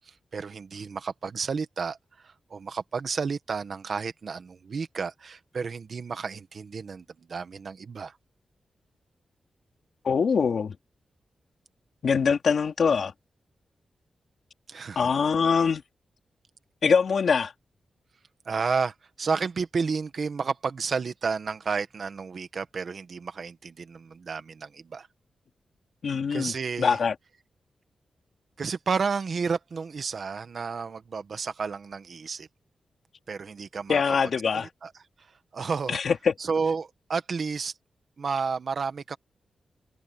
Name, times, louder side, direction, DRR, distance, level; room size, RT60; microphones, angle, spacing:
voice 1, 0.1-2.0 2.2-8.2 14.7-15.1 18.4-25.1 26.3-27.0 28.6-32.5 33.3-34.0 34.5-34.9 35.5-36.0 36.4-37.7 38.2-39.2, right 5 dB, 50° right, 1.4 m, -31 dB
voice 2, 10.0-10.7 12.0-13.1 15.0-15.8 16.8-17.5 26.0-26.5 26.8-27.1 33.9-34.7 35.9-36.3, left 6 dB, 55° left, 2.8 m, -23 dB
wide cardioid pair, 165°, 0 cm